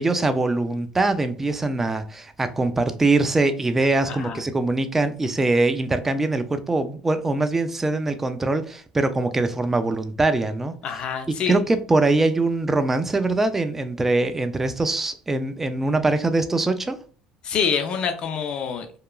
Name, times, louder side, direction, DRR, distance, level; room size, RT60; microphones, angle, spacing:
voice 1, 0.0-10.7 11.3-17.0, right 2 dB, 15° right, 9 dB, 0.3 m, -23 dB
voice 2, 4.1-4.4 10.8-11.6 17.4-18.9, left 7 dB, 50° left, 6 dB, 0.5 m, -26 dB
2.8 x 2.3 x 2.3 m, 0.42 s
supercardioid pair, 95°, 2 cm